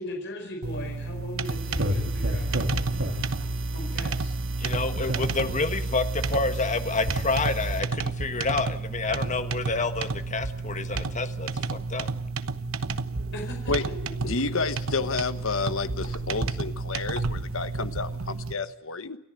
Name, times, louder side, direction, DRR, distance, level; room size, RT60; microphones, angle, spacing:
voice 1, 0.0-3.2 3.7-4.3 13.3-13.7 14.2-14.3, left 1 dB, 60° left, 2 dB, 4.6 m, -39 dB
sound 1, 0.6-18.5, right 4 dB, 85° right, 1.1 m, -32 dB
sound 2, 1.4-7.8, right 1 dB, 70° right, 2.9 m, -31 dB
voice 2, 4.6-12.1, left 3 dB, 35° left, 9 dB, 1.5 m, -29 dB
voice 3, 14.2-19.2, left 4 dB, 75° left, 11 dB, 1.3 m, -30 dB
29.0 x 14.0 x 9.0 m, 0.82 s
head